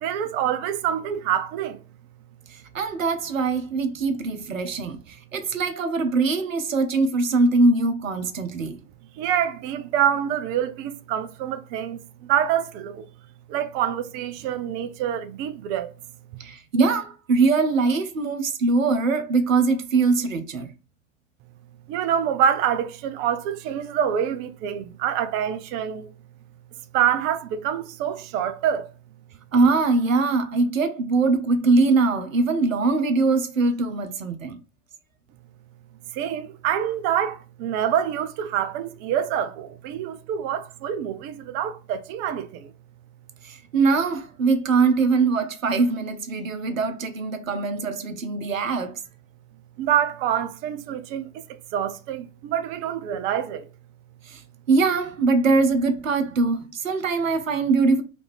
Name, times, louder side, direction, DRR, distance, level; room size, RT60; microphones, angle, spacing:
voice 1, 0.0-1.8 9.2-13.1 13.5-15.9 21.9-26.1 26.9-28.9 36.1-42.7 49.8-53.7, right 9 dB, 30° right, 0.3 m, -26 dB
voice 2, 2.5-8.8 16.4-20.7 29.5-34.6 43.4-49.0 54.2-54.4 54.7-58.0, right 3 dB, 80° right, 0.8 m, -22 dB
5.0 x 2.5 x 3.1 m
figure-of-eight pair, 80°, 40 cm